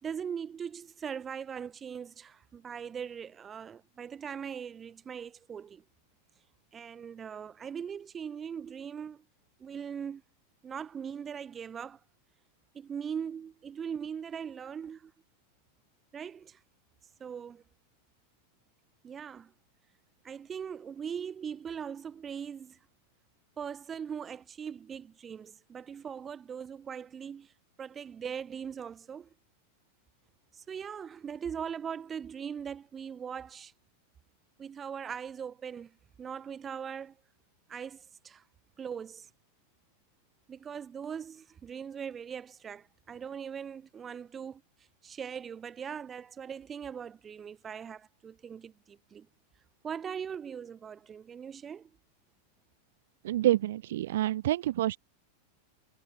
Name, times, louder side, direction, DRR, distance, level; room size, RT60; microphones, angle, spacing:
voice 1, 0.0-5.8 6.7-9.2 9.6-10.2 10.6-12.0 12.7-15.1 16.1-16.6 17.2-17.6 19.0-19.5 20.2-22.8 23.6-27.5 27.8-29.3 30.5-33.7 34.6-37.1 37.7-38.4 38.8-39.3 40.5-44.6 45.0-49.3 49.8-51.9, right 7 dB, 20° right, 3.4 m, -40 dB
voice 2, 53.2-55.0, right 14 dB, 55° right, 0.3 m, -27 dB
figure-of-eight pair, 90°, 0 cm